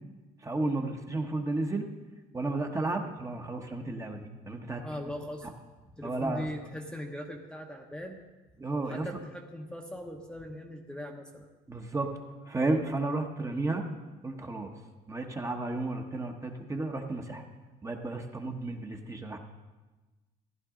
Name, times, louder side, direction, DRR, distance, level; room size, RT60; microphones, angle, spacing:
voice 1, 0.4-1.9 2.3-4.8 6.0-6.5 8.6-9.1 11.7-12.1 12.5-13.8 14.2-14.7 15.1-17.4 17.8-19.4, right 2 dB, 20° right, 3 dB, 1.1 m, -32 dB
voice 2, 4.8-5.5 6.0-8.2 8.8-11.5, equal, 5° left, 1 dB, 0.9 m, -40 dB
15.0 x 10.5 x 3.7 m, 1.2 s
cardioid pair, 110°, 17 cm